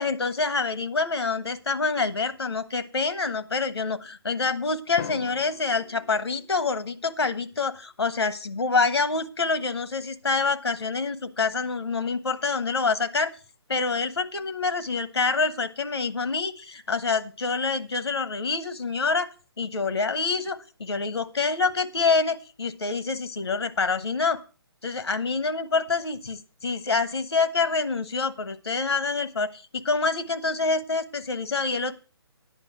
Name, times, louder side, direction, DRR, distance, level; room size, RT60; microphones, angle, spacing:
voice 1, 0.0-13.3 13.7-19.3 19.6-24.4 24.8-31.9, left 4 dB, 75° left, 12 dB, 1.3 m, -26 dB
Drum, 5.0-7.0, left 7 dB, 40° left, 0.6 m, -41 dB
9.8 x 5.3 x 7.8 m, 0.34 s
figure-of-eight pair, 140°, 14 cm